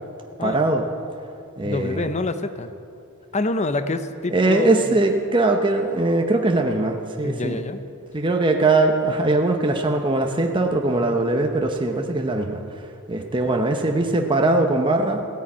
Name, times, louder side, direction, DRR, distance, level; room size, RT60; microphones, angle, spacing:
voice 1, 0.4-0.8 1.6-2.1 4.3-7.6 8.1-12.6 13.1-15.2, right 2 dB, 20° right, 3 dB, 0.8 m, -21 dB
voice 2, 1.6-2.7 3.3-4.8 7.2-7.8, left 2 dB, 30° left, 11 dB, 0.7 m, -26 dB
16.0 x 9.9 x 8.6 m, 2.6 s
head